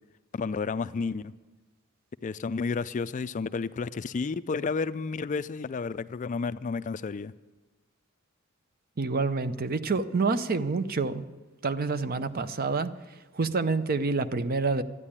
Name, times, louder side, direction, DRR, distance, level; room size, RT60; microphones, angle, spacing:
voice 1, 0.3-1.3 2.2-7.3, left 4 dB, 35° left, 15 dB, 0.3 m, -31 dB
voice 2, 9.0-11.3 11.6-12.9 13.3-14.8, right 4 dB, 45° right, 12 dB, 0.6 m, -27 dB
13.0 x 9.7 x 8.7 m, 1.2 s
head